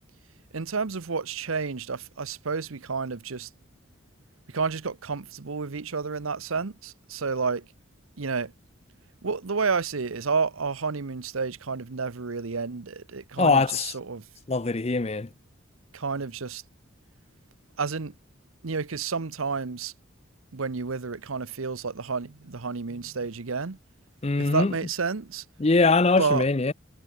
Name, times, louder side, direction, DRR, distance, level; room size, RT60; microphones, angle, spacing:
voice 1, 0.5-3.5 4.5-7.7 8.2-8.5 9.2-14.2 15.9-16.6 17.8-18.1 18.6-19.9 20.5-23.8 24.4-25.4 26.2-26.4, right 5 dB, 80° right, 0.9 m, -30 dB
voice 2, 13.4-13.9 14.5-15.3 24.2-24.7 25.6-26.7, left 3 dB, 30° left, 0.6 m, -22 dB
head